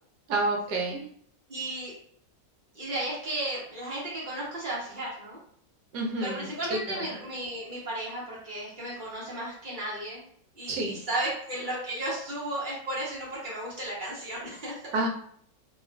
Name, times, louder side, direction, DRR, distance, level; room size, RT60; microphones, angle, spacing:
voice 1, 0.3-1.0 5.9-6.5 6.9-7.0 10.7-11.0 14.9-15.1, right 2 dB, 70° right, 0 dB, 1.2 m, -28 dB
voice 2, 1.5-1.9 2.7-5.4 6.2-10.2 10.6-14.8, right 1 dB, 40° right, -6 dB, 0.8 m, -34 dB
3.0 x 2.3 x 2.3 m, 0.63 s
omnidirectional pair, 1.9 m